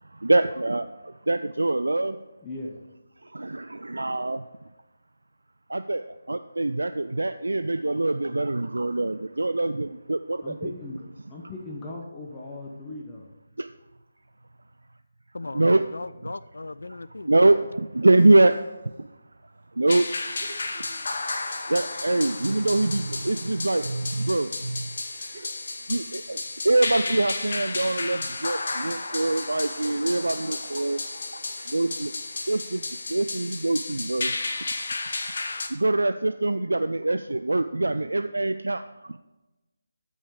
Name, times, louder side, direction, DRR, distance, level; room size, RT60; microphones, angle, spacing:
voice 1, 0.1-2.2 3.2-4.4 5.7-10.7 13.6-13.7 15.5-15.8 17.3-18.6 19.0-19.1 19.7-20.1 21.3-24.9 25.9-32.1 32.5-32.8 33.1-34.3 35.7-39.2, right 2 dB, 75° right, 10 dB, 0.4 m, -24 dB
voice 2, 2.4-2.8 9.0-9.2 10.4-13.3, left 2 dB, 15° left, -1 dB, 1.0 m, -38 dB
voice 3, 15.3-17.5, left 2 dB, 70° left, 16 dB, 0.3 m, -37 dB
sound 1, 18.1-19.0 19.6-19.7 20.2-21.2 21.7-23.2 23.5-26.0 27.0-27.6, right 2 dB, 45° right, 1.9 m, -50 dB
sound 2, 19.9-35.7, left 3 dB, 50° left, 1.2 m, -33 dB
12.5 x 5.4 x 4.9 m, 1.1 s
figure-of-eight pair, 155°, 0 cm